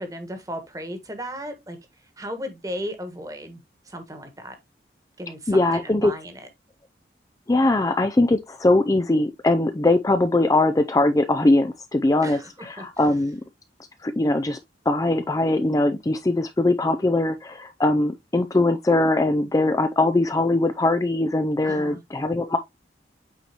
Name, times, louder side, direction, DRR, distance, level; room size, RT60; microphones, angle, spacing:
voice 1, 0.0-1.8 2.2-3.6 3.9-4.6 5.2-6.5 12.2-12.5 12.8-12.9 21.6-22.0, equal, 20° right, 1.4 m, -35 dB
voice 2, 5.5-6.1 7.5-13.4 14.0-14.6 14.9-22.6, left 2 dB, 20° left, 0.4 m, -21 dB
8.3 x 4.3 x 2.8 m
head